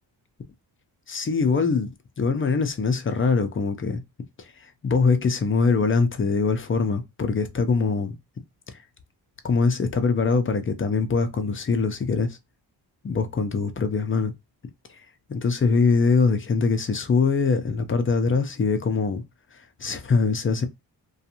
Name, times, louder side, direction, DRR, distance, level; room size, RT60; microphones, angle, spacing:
voice 1, 1.1-1.9 2.2-4.0 4.4-4.5 4.8-8.2 9.4-12.4 13.0-14.3 15.3-19.2 19.8-20.7, left 4 dB, 30° left, 0.5 m, -23 dB
2.5 x 2.3 x 2.8 m
cardioid pair, 85°, 44 cm